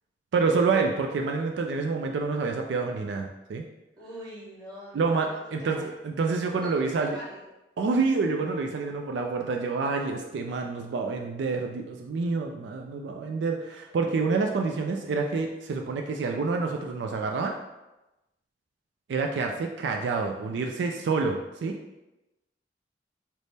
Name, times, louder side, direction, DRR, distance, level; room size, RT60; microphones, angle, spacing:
voice 1, 0.3-3.6 4.9-7.2 7.8-17.5 19.1-21.8, right 4 dB, 85° right, 3 dB, 0.3 m, -28 dB
voice 2, 4.0-5.9 6.6-7.5, equal, 25° right, -7 dB, 1.4 m, -44 dB
3.4 x 2.1 x 4.0 m, 1.0 s
head